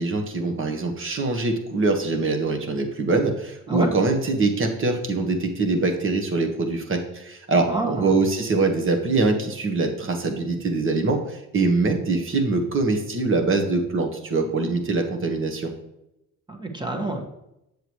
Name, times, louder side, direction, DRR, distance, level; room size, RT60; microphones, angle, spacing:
voice 1, 0.0-15.7, right 3 dB, 45° right, 4 dB, 1.4 m, -23 dB
voice 2, 7.7-8.1 16.5-17.2, right 2 dB, 15° right, 1 dB, 1.4 m, -27 dB
7.8 x 7.0 x 3.1 m, 0.87 s
cardioid pair, 90°, 30 cm